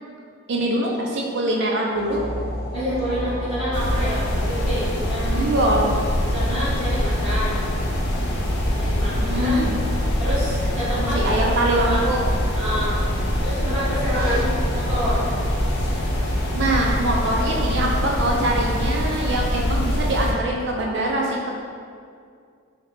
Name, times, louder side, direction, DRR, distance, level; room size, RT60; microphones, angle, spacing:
voice 1, 0.5-2.2 5.4-5.9 9.2-9.8 11.1-12.4 16.5-21.5, right 1 dB, 55° right, -1 dB, 0.4 m, -23 dB
sound 1, 1.9-19.4, equal, 75° left, 0.8 m, -30 dB
voice 2, 2.7-5.5 6.3-7.6 8.7-9.7 10.2-11.2 11.5-12.0 12.5-13.0 13.4-15.2, equal, 10° right, -18 dB, 1.3 m, -28 dB
sound 2, 3.7-20.3, left 1 dB, 50° left, 0.4 m, -24 dB
3.3 x 2.1 x 3.7 m, 2.2 s
head